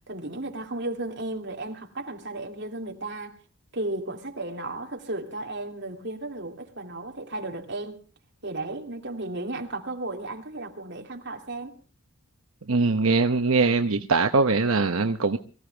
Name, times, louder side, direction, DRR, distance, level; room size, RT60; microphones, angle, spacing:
voice 1, 0.1-3.4 3.7-8.0 8.4-11.8, right 2 dB, 55° right, 2.6 m, -34 dB
voice 2, 12.7-15.4, right 3 dB, 80° right, 0.9 m, -22 dB
24.0 x 15.5 x 3.4 m
head